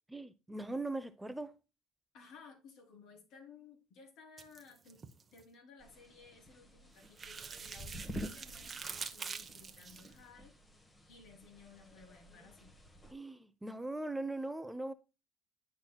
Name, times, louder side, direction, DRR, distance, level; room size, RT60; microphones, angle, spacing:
voice 1, 0.1-1.5 13.1-14.9, right 2 dB, 10° right, 0.6 m, -40 dB
voice 2, 2.1-5.0 5.3-10.5 11.1-12.8, left 5 dB, 70° left, 3.4 m, -57 dB
sound 1, 4.4-5.4 7.0-10.1, right 5 dB, 25° right, 0.9 m, -45 dB
sound 2, 5.8-13.1, equal, 15° left, 1.3 m, -50 dB
10.0 x 5.8 x 2.3 m
cardioid pair, 115°, 0 cm